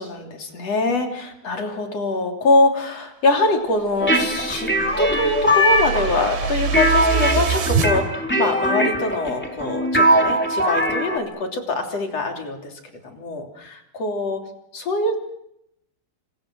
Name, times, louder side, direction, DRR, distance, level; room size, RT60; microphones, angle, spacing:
voice 1, 0.0-4.7 5.0-12.7 13.0-14.4 14.7-15.2, left 2 dB, 40° left, 2 dB, 3.9 m, -23 dB
sound 1, 3.9-7.9, right 6 dB, 75° right, 5.2 m, -26 dB
sound 2, 4.0-11.2, equal, 5° left, 2.7 m, -21 dB
28.5 x 27.5 x 6.2 m, 0.79 s
omnidirectional pair, 5.2 m